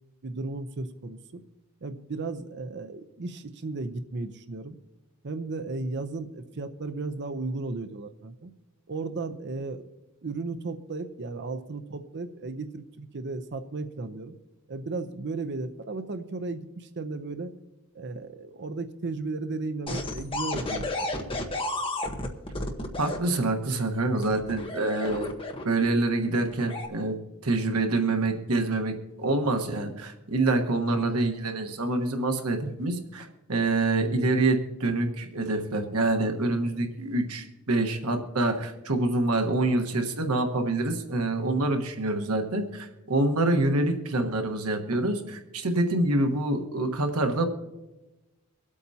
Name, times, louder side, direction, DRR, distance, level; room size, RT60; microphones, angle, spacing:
voice 1, 0.2-1.4 1.8-4.8 5.2-8.5 8.9-9.8 10.2-14.3 14.7-17.5 17.9-21.5, right 3 dB, 50° right, 10 dB, 0.6 m, -35 dB
sound 1, 19.9-23.2 24.2-25.9 26.5-26.9, left 2 dB, 25° left, 1.1 m, -32 dB
voice 2, 23.0-25.3 25.6-27.2 27.4-47.5, right 2 dB, 80° right, 5 dB, 1.3 m, -26 dB
24.5 x 8.3 x 2.8 m, 1.1 s
head